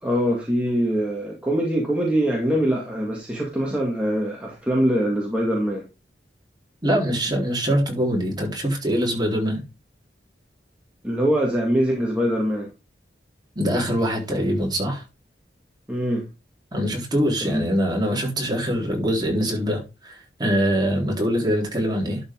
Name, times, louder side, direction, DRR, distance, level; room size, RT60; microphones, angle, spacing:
voice 1, 0.0-5.8 11.0-12.7 15.9-16.3 17.4-17.7, equal, 5° right, 2.0 m, -23 dB
voice 2, 6.8-9.6 13.6-15.0 16.7-22.2, equal, 25° right, 3.9 m, -23 dB
12.0 x 5.4 x 3.7 m
head